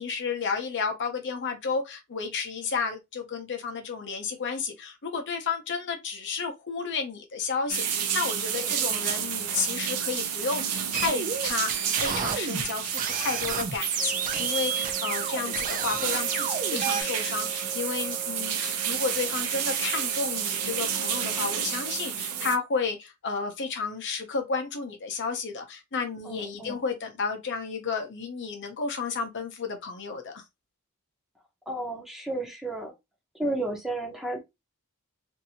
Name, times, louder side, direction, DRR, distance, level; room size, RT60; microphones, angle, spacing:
voice 1, 0.0-30.4, left 5 dB, 55° left, 0.7 m, -32 dB
sound 1, 7.7-22.6, right 8 dB, 85° right, 0.6 m, -30 dB
voice 2, 8.6-9.0 22.3-22.5 26.2-26.8 31.7-32.9 33.4-34.4, right 2 dB, ahead, 0.6 m, -33 dB
sound 2, 10.9-17.0, right 6 dB, 35° right, 0.4 m, -31 dB
sound 3, 14.0-22.0, right 7 dB, 40° left, 1.0 m, -43 dB
2.6 x 2.5 x 2.7 m
head